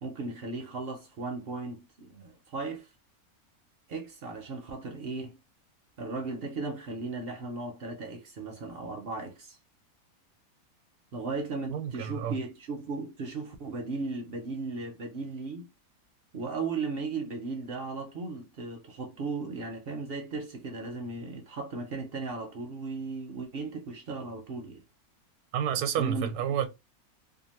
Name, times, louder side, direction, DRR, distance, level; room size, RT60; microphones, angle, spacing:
voice 1, 0.0-2.9 3.9-5.4 6.0-9.6 11.1-15.7 16.3-24.8 26.0-26.3, right 3 dB, 60° right, 0.6 m, -36 dB
voice 2, 11.7-12.4 25.5-26.7, right 9 dB, 85° right, 1.1 m, -30 dB
2.7 x 2.3 x 2.8 m
omnidirectional pair, 1.6 m